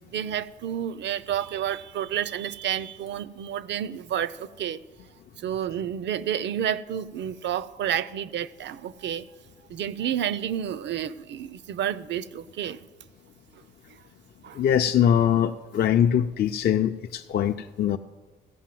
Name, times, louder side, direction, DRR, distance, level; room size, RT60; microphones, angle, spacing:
voice 1, 0.1-4.8 5.4-9.3 9.7-12.8 14.4-14.6, right 10 dB, 65° right, 17 dB, 0.5 m, -30 dB
voice 2, 14.5-18.0, left 9 dB, 50° left, 6 dB, 0.4 m, -22 dB
16.0 x 5.5 x 7.6 m, 1.3 s
cardioid pair, 90°, 20 cm